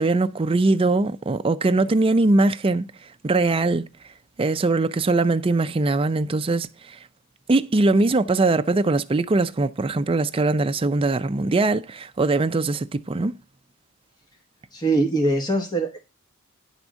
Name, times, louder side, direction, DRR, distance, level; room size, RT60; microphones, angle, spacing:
voice 1, 0.0-2.9 3.2-3.9 4.4-7.0 7.5-13.3, right 2 dB, 25° right, 0.4 m, -21 dB
voice 2, 14.7-16.0, right 2 dB, 20° left, 1.1 m, -22 dB
10.5 x 3.5 x 6.2 m
head